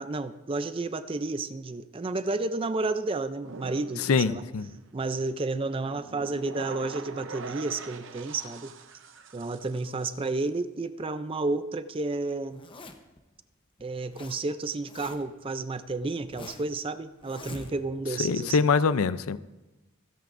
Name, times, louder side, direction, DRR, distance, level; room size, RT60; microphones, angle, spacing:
voice 1, 0.0-4.4 4.9-8.7 9.3-12.6 13.8-18.6, right 3 dB, 25° right, 12 dB, 0.4 m, -31 dB
sound 1, 3.4-10.4, right 4 dB, 60° right, 0.8 m, -44 dB
voice 2, 4.0-4.7 18.2-19.4, left 5 dB, 85° left, 14 dB, 0.5 m, -24 dB
Zipper (clothing), 12.5-13.2 13.8-14.4 14.6-15.4 15.9-16.8 17.2-18.0, left 2 dB, 25° left, 0.8 m, -45 dB
27.0 x 9.2 x 2.6 m, 1.1 s
head